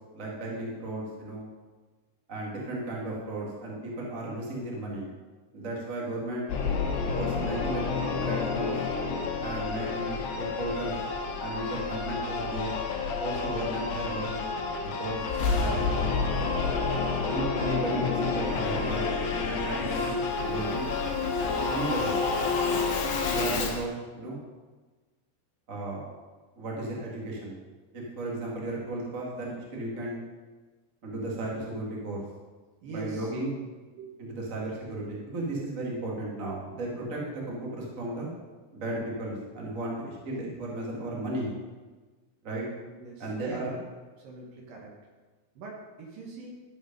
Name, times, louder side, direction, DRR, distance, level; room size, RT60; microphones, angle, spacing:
voice 1, 0.1-1.5 2.3-5.1 5.5-6.5 7.1-8.7 9.4-11.0 11.4-12.8 13.0-14.5 14.8-16.4 17.2-19.1 19.5-20.9 21.4-22.2 23.2-24.4 25.7-26.0 26.5-27.6 27.9-30.2 31.0-32.2 32.8-33.5 34.2-38.3 38.7-41.5 42.4-42.6 43.2-43.8, right 2 dB, 35° right, -4 dB, 1.3 m, -34 dB
Singing / Musical instrument, 6.5-23.9, left 4 dB, 90° left, 3.3 m, -29 dB
voice 2, 32.8-33.3 33.9-34.3 36.7-37.1 43.0-43.6 44.2-44.9 45.6-46.5, right 3 dB, 65° right, -1 dB, 2.8 m, -42 dB
12.5 x 5.3 x 5.2 m, 1.3 s
omnidirectional pair, 4.8 m